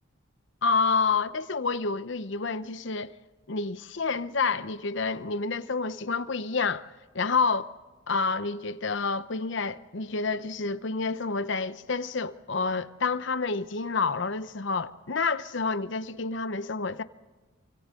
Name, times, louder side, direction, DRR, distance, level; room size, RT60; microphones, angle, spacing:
voice 1, 0.6-3.1 3.5-6.8 7.1-7.7 8.1-17.0, left 4 dB, 60° left, 0.8 m, -28 dB
27.5 x 25.0 x 3.8 m
head